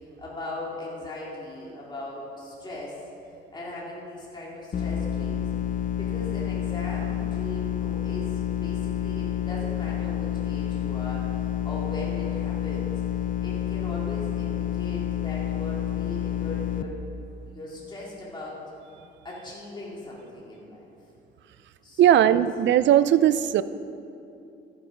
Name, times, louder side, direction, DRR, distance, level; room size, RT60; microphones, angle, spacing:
voice 1, 0.2-3.0 3.5-5.5 5.9-12.9 13.4-17.0 17.5-18.6 19.2-20.8 21.8-22.3, left 1 dB, 20° left, -6 dB, 2.6 m, -39 dB
sound 1, 4.7-16.8, left 10 dB, 40° left, 0.6 m, -29 dB
voice 2, 22.0-23.6, right 11 dB, 65° right, 15 dB, 0.5 m, -18 dB
14.0 x 8.0 x 5.1 m, 2.7 s
cardioid pair, 90°, 20 cm